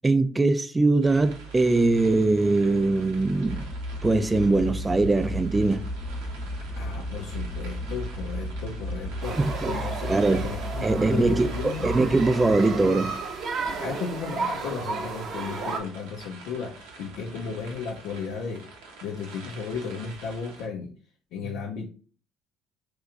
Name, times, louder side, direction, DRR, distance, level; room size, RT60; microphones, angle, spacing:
voice 1, 0.0-3.7 4.0-5.9 9.4-9.7 10.1-10.5 10.8-13.2, right 2 dB, 20° right, 0.4 m, -22 dB
sound 1, 1.0-20.7, right 3 dB, 85° right, 0.9 m, -46 dB
sound 2, 3.4-13.5, equal, 25° left, 0.8 m, -34 dB
voice 2, 6.8-9.4 9.7-11.9 13.8-18.7 19.0-20.9 21.3-21.9, left 5 dB, 70° left, 0.5 m, -35 dB
sound 3, 9.2-15.8, right 4 dB, 55° right, 0.7 m, -33 dB
2.9 x 2.3 x 3.7 m
hypercardioid pair, 65°, 0 cm